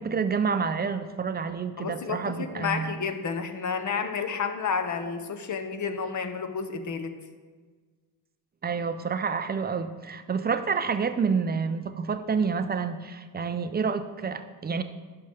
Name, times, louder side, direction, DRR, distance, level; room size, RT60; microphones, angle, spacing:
voice 1, 0.0-3.0 8.6-14.8, right 5 dB, 20° right, 10 dB, 0.5 m, -28 dB
voice 2, 1.8-7.1, left 5 dB, 40° left, 8 dB, 0.8 m, -31 dB
11.5 x 5.3 x 3.5 m, 1.5 s
supercardioid pair, 75°, 45 cm